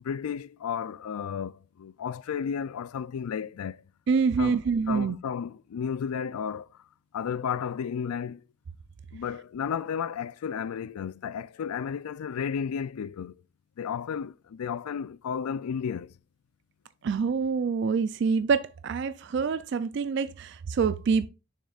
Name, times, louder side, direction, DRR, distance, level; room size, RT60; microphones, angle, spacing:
voice 1, 0.0-3.8 4.4-4.6 4.9-6.8 7.1-8.4 9.1-13.3 13.8-16.1, left 7 dB, 90° left, 0.4 m, -33 dB
voice 2, 4.1-5.2 17.0-21.3, right 5 dB, 50° right, 0.3 m, -26 dB
6.7 x 6.4 x 2.4 m
head